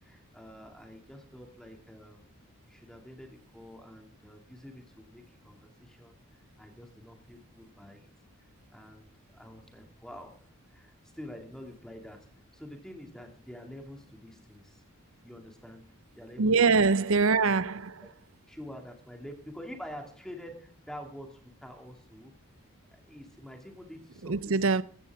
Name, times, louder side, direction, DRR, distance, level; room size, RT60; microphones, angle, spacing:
voice 1, 0.0-2.3 2.7-6.2 6.6-8.1 8.4-9.1 9.3-14.8 15.2-16.8 18.0-18.1 18.5-22.3 22.9-24.8, equal, 5° left, 2.5 m, -47 dB
voice 2, 16.4-18.1 24.2-24.8, right 4 dB, 65° right, 0.7 m, -24 dB
15.0 x 14.0 x 3.6 m
head